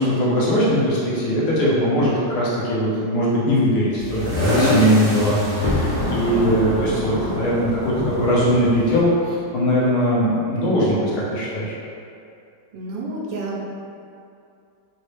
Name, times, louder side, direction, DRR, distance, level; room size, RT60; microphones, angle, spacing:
voice 1, 0.0-11.7, equal, 70° left, -7 dB, 1.2 m, -20 dB
sound 1, 4.0-9.0, left 1 dB, 50° right, 0.7 m, -25 dB
Thunder, 5.4-9.5, left 1 dB, 40° left, 0.3 m, -27 dB
voice 2, 6.2-6.7 12.7-13.6, right 2 dB, 90° right, -3 dB, 1.3 m, -30 dB
4.1 x 2.0 x 3.2 m, 2.5 s
omnidirectional pair, 2.0 m